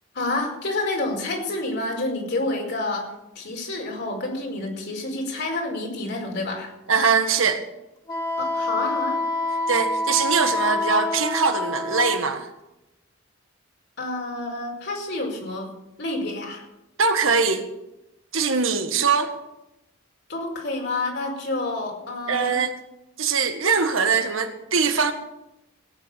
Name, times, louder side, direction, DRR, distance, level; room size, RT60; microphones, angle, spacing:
voice 1, 0.1-3.1 3.3-6.7 8.4-9.2 14.0-15.7 16.0-16.6 20.3-22.6, left 2 dB, 60° left, 0 dB, 5.0 m, -28 dB
voice 2, 6.9-7.6 9.7-12.5 17.0-17.6 18.3-19.3 22.3-22.7 23.2-25.1, right 5 dB, 80° right, 6 dB, 1.8 m, -22 dB
Wind instrument woodwind instrument, 8.1-12.2, left 2 dB, 25° left, 3.2 m, -26 dB
17.0 x 9.5 x 7.0 m, 0.90 s
head